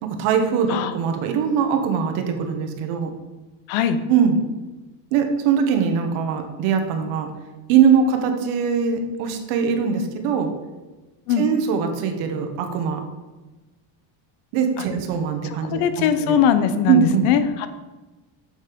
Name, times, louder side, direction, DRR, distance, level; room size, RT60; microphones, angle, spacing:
voice 1, 0.0-3.1 4.1-4.4 5.1-7.3 7.7-10.5 11.4-13.0 14.5-16.4 16.9-17.3, right 7 dB, 80° right, 5 dB, 1.5 m, -21 dB
voice 2, 15.7-17.7, left 8 dB, 75° left, 11 dB, 0.9 m, -20 dB
8.1 x 6.7 x 5.3 m, 1.2 s
cardioid pair, 160°, 47 cm